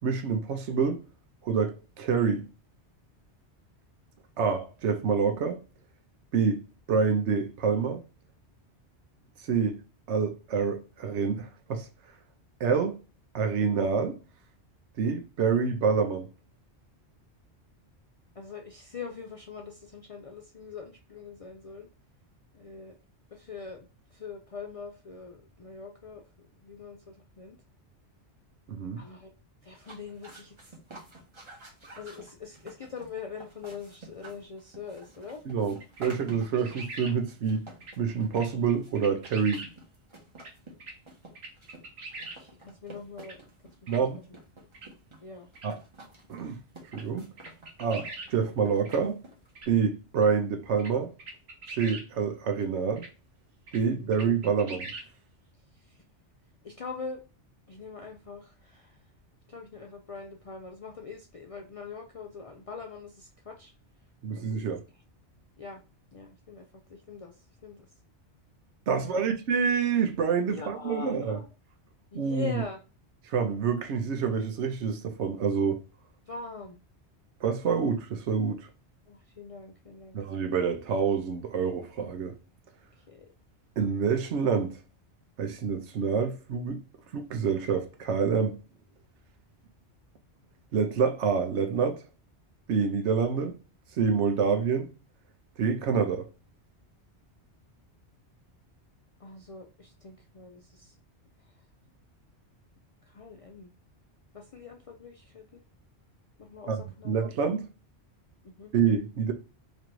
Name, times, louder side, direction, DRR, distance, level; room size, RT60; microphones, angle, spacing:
voice 1, 0.0-1.0 1.4-2.5 4.4-5.6 6.3-6.6 6.9-8.0 9.5-9.8 10.1-11.9 12.6-13.0 13.3-14.2 15.0-16.3 28.7-29.0 35.5-37.7 38.0-39.6 43.9-44.2 45.6-45.8 46.3-46.6 46.9-47.3 47.8-49.2 49.7-51.1 51.8-53.1 53.7-54.9 64.2-64.8 68.9-71.4 72.1-72.6 73.3-75.8 77.4-78.7 80.1-82.3 83.8-84.8 85.4-86.8 87.1-88.6 90.7-92.0 92.7-93.5 94.0-94.9 95.6-96.3 106.7-107.7 108.7-109.3, right 6 dB, 85° right, 1.0 m, -27 dB
voice 2, 18.3-21.9 22.5-22.9 23.3-26.2 26.6-27.6 29.0-29.3 29.6-30.7 31.9-35.4 42.3-43.4 43.9-44.4 45.2-45.5 53.8-54.2 55.7-56.0 56.6-57.2 57.7-59.0 59.5-63.7 64.3-64.5 65.6-65.8 66.1-67.9 69.1-69.3 70.5-71.5 72.1-72.8 76.3-76.8 79.1-80.2 83.0-83.3 99.2-101.0 103.0-103.7 104.3-105.6 106.4-107.1 108.4-108.7, left 5 dB, 60° left, 0.3 m, -43 dB
sound 1, 29.7-49.6, right 2 dB, 30° right, 0.9 m, -50 dB
sound 2, 35.8-37.1 37.8-37.9 38.3-39.7 40.4-40.5 40.8-40.9 41.4-42.4 43.2-43.4 43.9-44.0 44.7-44.9 45.6-45.7 46.9-47.0 47.4-48.3 48.8-49.0 49.6-49.7 50.2-50.3 50.8-50.9 51.2-52.1 52.6-52.7 53.0-53.1 53.7-53.8 54.1-55.1, right 3 dB, 65° right, 1.2 m, -42 dB
3.1 x 2.5 x 4.4 m
omnidirectional pair, 1.1 m